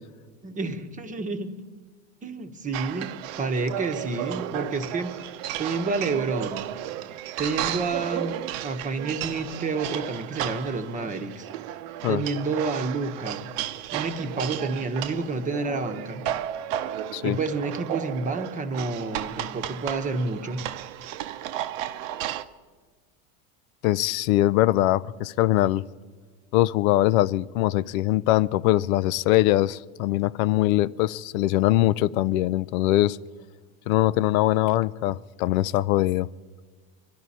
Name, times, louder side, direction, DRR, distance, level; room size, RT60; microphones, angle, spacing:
voice 1, 0.4-1.5 2.2-5.2 5.6-6.7 7.4-11.5 12.1-13.5 13.9-16.2 17.2-20.6, right 3 dB, 20° right, 0.9 m, -29 dB
sound 1, 2.7-22.4, right 12 dB, 70° right, 0.8 m, -33 dB
voice 2, 23.8-25.8 26.5-33.2 33.9-36.3, left 15 dB, 85° left, 0.5 m, -22 dB
23.5 x 12.5 x 4.2 m
supercardioid pair, 135°, 41 cm